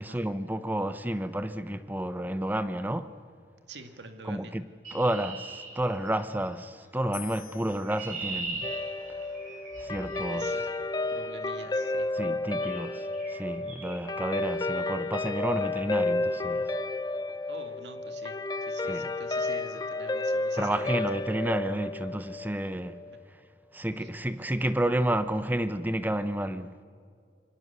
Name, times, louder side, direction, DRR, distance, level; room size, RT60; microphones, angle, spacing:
voice 1, 0.0-3.1 4.2-4.7 4.9-8.7 9.8-10.5 12.1-16.7 18.8-19.1 20.6-23.0 23.7-26.8, right 1 dB, 10° right, 0.8 m, -31 dB
voice 2, 3.7-4.5 10.3-10.7 11.1-12.1 17.5-18.4 18.7-20.9 24.0-24.1, right 3 dB, 75° right, 2.1 m, -46 dB
Chirp tweet, 4.8-6.5 7.5-10.6 11.7-12.0 12.6-12.9 13.1-13.4 13.7-14.0, right 3 dB, 45° right, 6.3 m, -40 dB
sound 1, 7.1-10.4, left 15 dB, 50° left, 1.4 m, -50 dB
Guitar, 8.6-23.2, left 2 dB, 20° left, 0.7 m, -32 dB
27.5 x 24.0 x 6.8 m
head